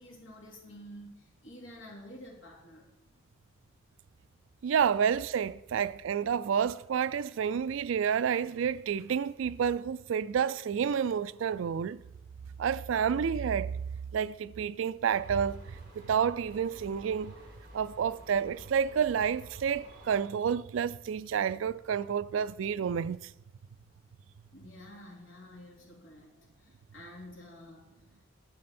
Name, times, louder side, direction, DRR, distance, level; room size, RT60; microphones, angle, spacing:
voice 1, 0.0-2.9 24.5-27.9, left 1 dB, 70° left, 2.7 m, -50 dB
voice 2, 4.6-12.0 12.6-13.7 14.1-17.3 17.7-23.3, right 7 dB, 75° right, 0.3 m, -29 dB
sound 1, 15.1-20.2, equal, 45° right, 2.2 m, -52 dB
9.7 x 7.6 x 4.3 m
head